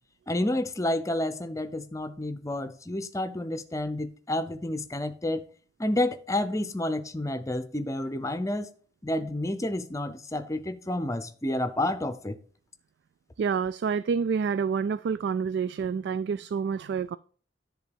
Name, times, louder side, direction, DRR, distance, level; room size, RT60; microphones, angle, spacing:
voice 1, 0.3-5.4 5.8-8.7 9.0-12.4, left 1 dB, 20° left, 0.6 m, -30 dB
voice 2, 13.4-17.2, right 6 dB, 65° right, 0.3 m, -28 dB
10.0 x 3.7 x 6.9 m
head